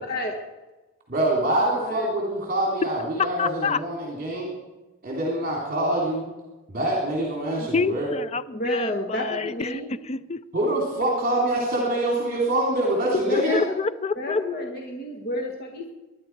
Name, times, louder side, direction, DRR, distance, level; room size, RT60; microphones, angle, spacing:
voice 1, 1.1-4.5 5.0-6.2 6.7-8.1 10.5-13.6, right 1 dB, 40° right, -3 dB, 3.0 m, -25 dB
voice 2, 1.7-2.1 8.5-9.9 13.3-13.7 14.1-15.9, left 1 dB, 45° left, 2 dB, 1.6 m, -31 dB
voice 3, 3.4-3.8 7.6-10.4 13.3-14.4, left 4 dB, 30° left, 15 dB, 0.5 m, -27 dB
22.0 x 11.0 x 4.6 m, 1.1 s
head